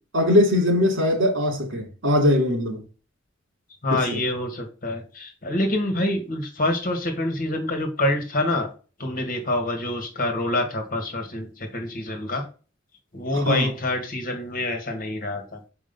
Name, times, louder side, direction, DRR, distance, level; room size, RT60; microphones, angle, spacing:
voice 1, 0.1-2.8 3.9-4.2 13.3-13.7, left 1 dB, 90° right, 2.8 m, -21 dB
voice 2, 3.8-8.7 9.0-12.4 13.1-15.6, left 1 dB, 45° left, 1.9 m, -26 dB
6.4 x 4.9 x 5.4 m
head